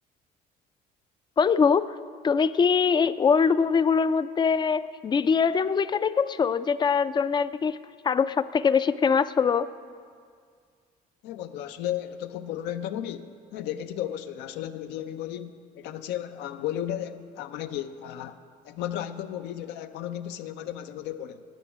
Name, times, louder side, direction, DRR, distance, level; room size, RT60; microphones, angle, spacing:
voice 1, 1.4-1.9 2.2-7.8 8.0-9.7, left 6 dB, 25° left, 15 dB, 0.4 m, -23 dB
voice 2, 11.2-18.4 18.6-21.4, left 11 dB, 85° left, 10 dB, 0.6 m, -34 dB
10.0 x 7.1 x 8.9 m, 2.1 s
cardioid pair, 110°, 17 cm